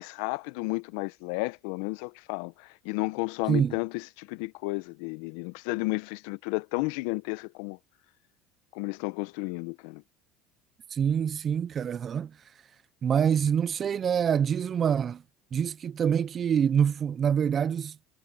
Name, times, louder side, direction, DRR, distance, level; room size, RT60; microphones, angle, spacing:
voice 1, 0.0-7.8 8.7-10.0, left 25 dB, 70° left, 1.0 m, -32 dB
voice 2, 10.9-12.3 13.0-15.2 15.5-18.0, right 8 dB, 40° right, 0.8 m, -26 dB
hypercardioid pair, 75°, 0 cm